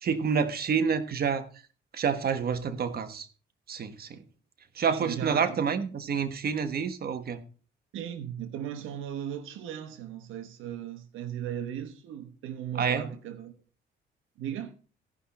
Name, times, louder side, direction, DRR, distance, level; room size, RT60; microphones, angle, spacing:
voice 1, 0.0-1.5 1.9-3.3 3.7-4.2 4.7-7.4 12.7-13.1, right 6 dB, 50° right, 1.3 m, -28 dB
voice 2, 4.9-5.6 7.9-13.6 14.4-14.7, right 10 dB, 85° right, 1.2 m, -37 dB
17.0 x 5.7 x 4.3 m
cardioid pair, 90°, 20 cm